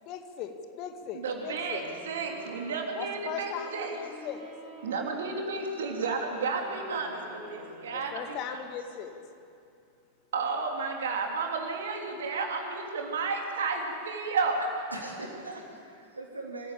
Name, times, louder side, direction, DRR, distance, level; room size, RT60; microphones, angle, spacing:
voice 1, 0.0-1.9 3.0-4.4 7.9-9.1, left 8 dB, 40° left, 7 dB, 1.9 m, -39 dB
voice 2, 1.1-4.0 4.8-8.6 10.3-14.6, right 4 dB, 65° right, 2 dB, 3.2 m, -32 dB
Wind instrument woodwind instrument, 1.4-8.3, right 2 dB, 40° right, 5.9 m, -48 dB
voice 3, 14.6-16.7, right 2 dB, 80° right, 0 dB, 3.6 m, -41 dB
25.0 x 15.5 x 8.9 m, 2.6 s
figure-of-eight pair, 90°, 0 cm